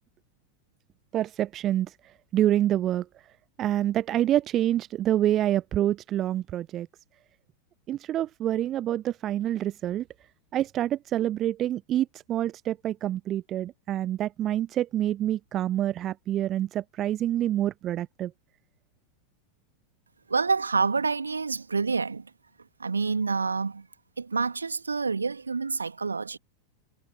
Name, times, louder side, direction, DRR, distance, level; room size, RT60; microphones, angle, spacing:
voice 1, 1.1-1.9 2.3-3.0 3.6-6.9 7.9-10.0 10.5-18.3, right 12 dB, 30° right, 0.4 m, -27 dB
voice 2, 20.3-22.3 22.8-23.9 24.2-26.4, right 4 dB, 75° right, 1.9 m, -27 dB
figure-of-eight pair, 90°, 0 cm